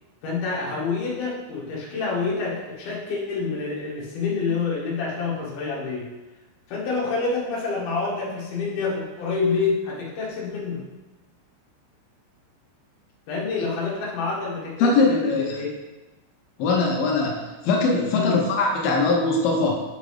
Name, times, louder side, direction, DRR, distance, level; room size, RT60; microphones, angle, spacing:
voice 1, 0.2-6.1 6.7-10.8 13.3-15.7 18.1-18.5, left 4 dB, 55° left, -5 dB, 2.6 m, -27 dB
voice 2, 14.8-15.6 16.6-19.7, left 3 dB, 90° left, -1 dB, 2.0 m, -21 dB
9.0 x 4.0 x 4.9 m, 1.1 s
omnidirectional pair, 5.6 m